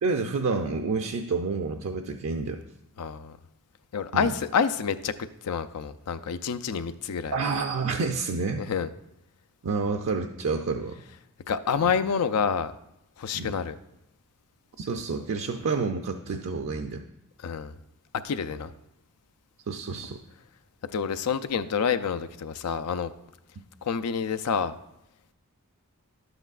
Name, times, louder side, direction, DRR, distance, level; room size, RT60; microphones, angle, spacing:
voice 1, 0.0-2.6 4.1-4.3 7.3-8.6 9.6-11.0 11.8-11.9 13.3-13.6 14.8-17.0 19.7-20.2, right 4 dB, 60° right, 4 dB, 0.5 m, -29 dB
voice 2, 3.0-3.4 3.9-5.1 5.4-7.3 8.6-8.9 11.5-12.7 13.2-13.7 17.4-17.7 18.2-18.7 20.9-23.1 23.8-24.7, left 6 dB, 90° left, 12 dB, 0.5 m, -28 dB
11.5 x 7.9 x 2.4 m, 0.86 s
head